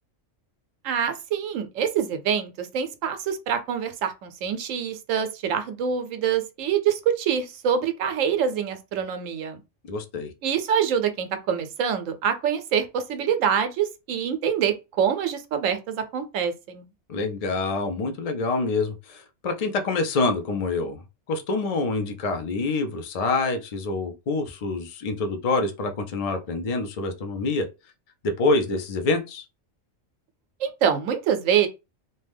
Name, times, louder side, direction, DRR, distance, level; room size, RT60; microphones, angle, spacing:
voice 1, 0.8-9.6 10.4-16.9 30.6-31.7, right 8 dB, 80° right, 1.0 m, -25 dB
voice 2, 9.9-10.3 17.1-21.0 21.3-27.6 28.4-29.4, left 3 dB, 70° left, 0.3 m, -26 dB
2.8 x 2.1 x 3.4 m
omnidirectional pair, 1.3 m